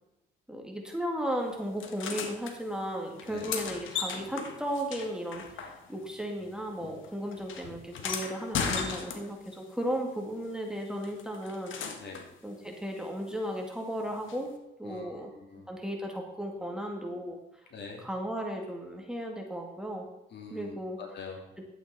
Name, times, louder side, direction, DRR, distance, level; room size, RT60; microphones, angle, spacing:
voice 1, 0.5-5.6 5.9-11.7 12.4-14.5 14.8-15.3 15.7-17.4 18.0-20.0 20.5-21.0, equal, 5° right, 1 dB, 2.1 m, -35 dB
sound 1, 1.8-2.5 3.2-6.1 6.4-9.6 11.0-12.3 14.3-14.4, left 6 dB, 75° left, 1.4 m, -37 dB
voice 2, 14.8-15.7 17.7-18.0 20.3-21.5, left 4 dB, 60° left, 1 dB, 2.9 m, -44 dB
11.5 x 9.0 x 4.2 m, 0.93 s
cardioid pair, 90°, 20 cm